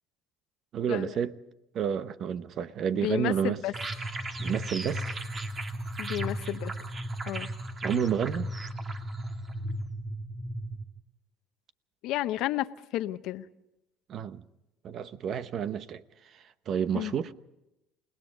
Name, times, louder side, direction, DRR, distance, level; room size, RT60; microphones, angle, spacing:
voice 1, 0.7-1.4 1.7-3.6 4.4-5.1 7.8-8.5 14.1-14.4 14.8-16.0 16.3-17.3, right 8 dB, 50° right, 1.0 m, -30 dB
voice 2, 2.9-3.7 6.0-6.7 7.2-7.5 12.0-12.7 12.9-13.5 16.9-17.1, left 14 dB, 65° left, 0.9 m, -31 dB
sound 1, 3.7-10.8, right 1 dB, 30° right, 2.5 m, -35 dB
28.5 x 19.0 x 5.2 m
supercardioid pair, 105°, 0 cm